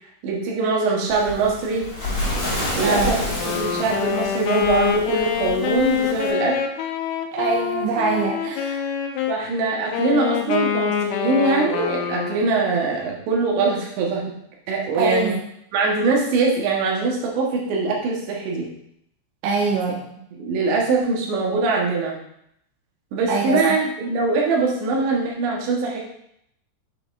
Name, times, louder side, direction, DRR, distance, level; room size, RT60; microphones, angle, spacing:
voice 1, 0.2-1.9 2.8-6.6 9.3-14.2 14.7-15.3 15.7-18.7 20.1-22.2 23.1-26.0, right 3 dB, 70° right, -2 dB, 3.0 m, -22 dB
Waves surf, 1.1-6.3, left 1 dB, 25° left, 2.1 m, -29 dB
voice 2, 2.8-3.2 7.3-8.8 14.9-15.4 19.4-20.0 23.3-23.6, right 4 dB, 85° right, -1 dB, 2.8 m, -23 dB
Wind instrument woodwind instrument, 3.3-9.4 9.9-12.6, left 8 dB, 85° left, 3.2 m, -26 dB
8.3 x 5.7 x 2.6 m, 0.74 s
omnidirectional pair, 6.0 m